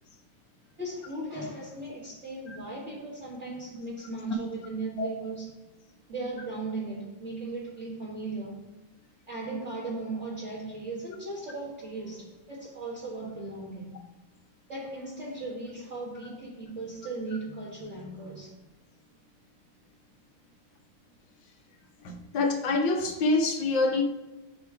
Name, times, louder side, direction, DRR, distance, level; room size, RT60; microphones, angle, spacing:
voice 1, 0.8-5.5 6.1-8.7 9.3-14.0 14.7-18.6, right 2 dB, 35° right, 1.6 m, -37 dB
voice 2, 22.0-24.0, left 3 dB, 65° left, 1.4 m, -26 dB
8.3 x 3.1 x 4.7 m
omnidirectional pair, 2.4 m